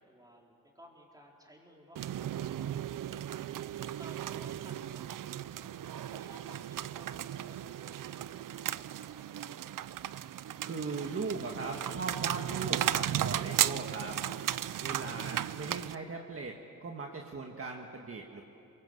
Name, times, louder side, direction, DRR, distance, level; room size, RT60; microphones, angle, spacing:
voice 1, 0.0-3.4 4.0-5.7 6.1-9.2, equal, 10° right, -1 dB, 4.0 m, -57 dB
sound 1, 2.0-16.0, right 11 dB, 75° right, 0.6 m, -35 dB
voice 2, 10.6-14.2 14.8-18.4, right 3 dB, 45° right, 1 dB, 1.6 m, -39 dB
27.0 x 23.5 x 8.0 m, 2.9 s
wide cardioid pair, 130°, 32 cm